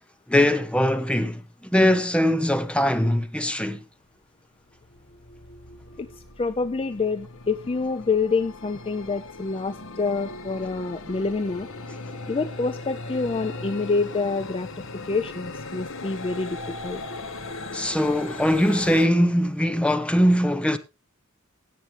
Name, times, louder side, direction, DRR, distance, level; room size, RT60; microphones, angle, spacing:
voice 1, 0.3-3.8 17.7-20.8, equal, 5° left, 0.9 m, -21 dB
sound 1, 4.1-4.2 4.6-19.1, left 3 dB, 65° left, 1.3 m, -38 dB
voice 2, 6.4-11.7 12.3-14.7 14.9-17.0, left 4 dB, 25° left, 0.5 m, -27 dB
17.0 x 7.5 x 3.3 m
head